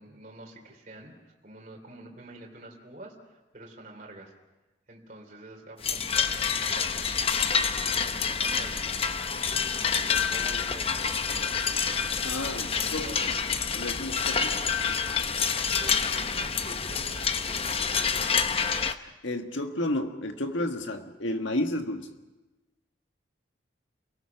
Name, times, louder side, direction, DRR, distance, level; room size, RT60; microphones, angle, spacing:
voice 1, 0.0-4.3 4.9-7.1 7.8-8.9 9.2-13.3 15.8-18.4, right 1 dB, 40° right, 0 dB, 3.4 m, -47 dB
sound 1, 5.8-18.9, left 6 dB, 30° left, 0.7 m, -28 dB
voice 2, 12.2-13.2 13.7-14.6 19.2-22.1, left 1 dB, 80° left, 5 dB, 1.7 m, -31 dB
29.0 x 18.0 x 6.0 m, 1.1 s
head